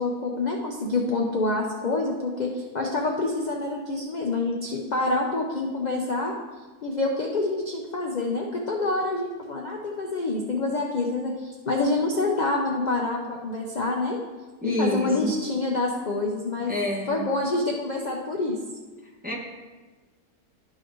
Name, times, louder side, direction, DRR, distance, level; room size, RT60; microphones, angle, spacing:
voice 1, 0.0-6.3 6.8-14.2 14.6-16.7 17.1-18.6, left 2 dB, 60° left, 0 dB, 0.4 m, -27 dB
voice 2, 14.6-15.3 16.6-17.2 19.2-19.4, equal, 10° right, -2 dB, 0.7 m, -28 dB
12.0 x 4.7 x 3.0 m, 1.3 s
omnidirectional pair, 1.6 m